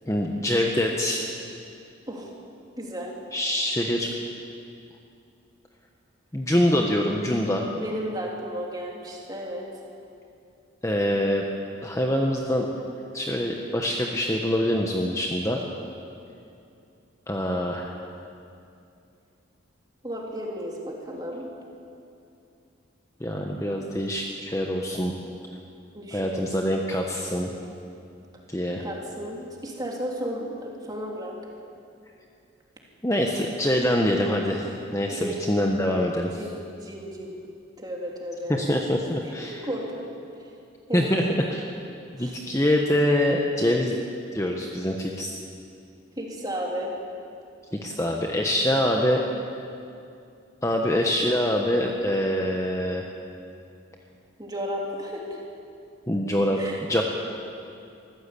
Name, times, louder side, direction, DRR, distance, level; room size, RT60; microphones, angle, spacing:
voice 1, 0.1-1.3 3.3-4.1 6.3-7.7 10.8-11.4 11.8-12.7 13.1-15.6 17.3-17.9 23.2-25.1 26.1-27.5 28.5-28.8 33.0-34.6 34.9-36.4 38.5-39.6 40.9-41.7 42.2-43.9 44.3-45.3 47.7-49.2 50.6-53.1 56.1-57.0, left 1 dB, 15° left, 1 dB, 1.2 m, -24 dB
voice 2, 2.8-3.1 7.8-9.7 20.0-21.5 25.9-26.8 28.8-31.4 35.1-35.4 36.3-37.3 37.8-38.8 39.2-40.1 40.4-40.5 40.9-41.1 42.2-42.4 46.2-46.9 54.4-55.4 56.6-56.9, equal, 20° right, -1 dB, 3.2 m, -34 dB
24.0 x 15.0 x 8.5 m, 2.6 s
head